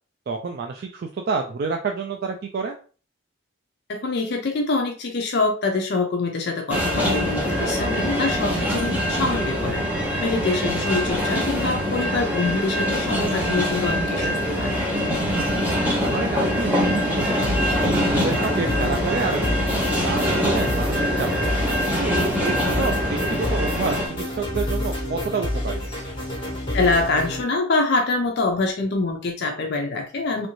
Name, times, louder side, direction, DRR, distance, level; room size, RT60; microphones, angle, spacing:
voice 1, 0.3-2.8 14.2-14.3 16.0-17.4 17.8-19.5 20.0-21.6 22.0-25.8, right 4 dB, 50° right, 3 dB, 0.3 m, -29 dB
voice 2, 3.9-14.8 26.7-30.5, left 3 dB, 55° left, 3 dB, 0.4 m, -25 dB
sound 1, 6.7-24.1, equal, 10° right, 0.7 m, -24 dB
sound 2, 17.4-27.4, left 1 dB, 25° left, 1.2 m, -29 dB
3.1 x 2.5 x 3.0 m, 0.40 s
head